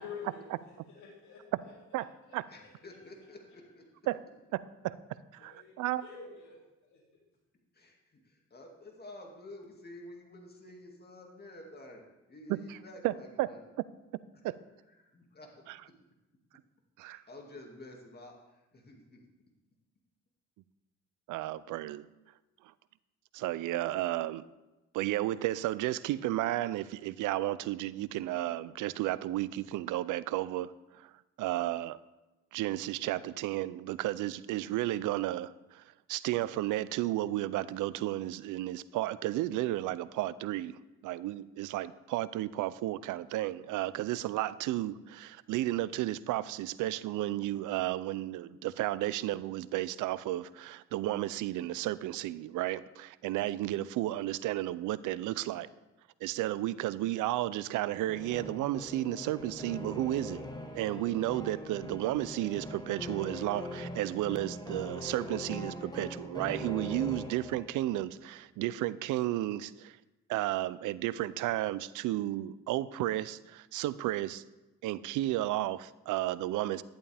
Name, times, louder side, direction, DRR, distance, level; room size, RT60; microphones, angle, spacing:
voice 1, 0.0-2.7 5.4-5.7 6.0-7.0, left 6 dB, 70° left, -3 dB, 2.7 m, -48 dB
voice 2, 2.5-3.9 7.7-12.0 12.3-13.6 15.4-15.5 17.0-19.2, left 1 dB, 30° left, 1 dB, 2.2 m, -50 dB
voice 3, 13.0-13.5 15.7-15.8 17.0-17.2 21.3-22.1 23.3-24.4 24.9-31.1 31.4-32.0 32.5-35.8 36.1-55.7 56.2-60.5 60.7-70.0 70.3-74.4 74.8-76.8, right 15 dB, 90° right, 18 dB, 0.5 m, -33 dB
sound 1, 58.1-67.9, left 1 dB, 15° left, 1.3 m, -42 dB
11.5 x 11.0 x 3.4 m, 1.0 s
cardioid pair, 90°, 30 cm